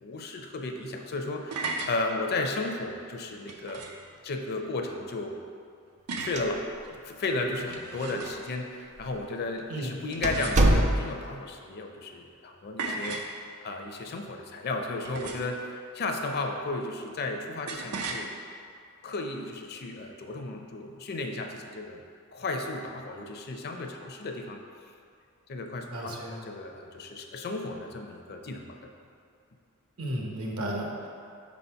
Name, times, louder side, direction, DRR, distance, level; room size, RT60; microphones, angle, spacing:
voice 1, 0.0-3.9 4.2-5.4 6.2-6.7 7.0-18.3 19.0-22.0 22.3-24.6 25.5-28.8, left 2 dB, 45° left, 4 dB, 0.5 m, -34 dB
sound 1, 1.5-2.0 3.5-4.1 6.1-6.5 7.5-8.5 10.1-10.9 12.8-13.3 15.0-15.6 17.7-18.2, right 3 dB, 85° right, 0.6 m, -36 dB
sound 2, 6.2-7.0 7.2-7.3 8.1-8.2 9.0-9.2 9.6-9.7 10.2-11.4, right 1 dB, 30° right, 0.4 m, -24 dB
voice 2, 25.9-26.5 30.0-31.1, right 1 dB, 70° right, -1 dB, 0.9 m, -34 dB
4.6 x 4.1 x 5.6 m, 2.3 s
head